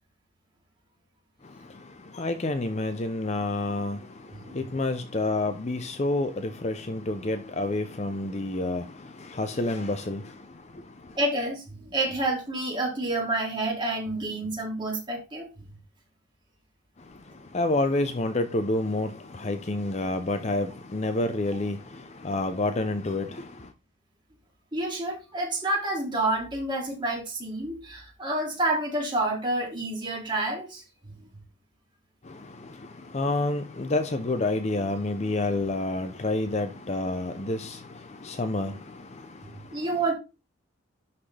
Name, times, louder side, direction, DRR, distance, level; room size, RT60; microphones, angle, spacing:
voice 1, 2.1-4.0 4.5-10.3 17.5-23.5 32.3-32.7 33.1-39.1, left 2 dB, 30° left, 0.5 m, -28 dB
voice 2, 11.2-15.5 24.7-31.1 39.7-40.1, right 2 dB, 20° right, 2.4 m, -29 dB
11.0 x 4.1 x 3.3 m
head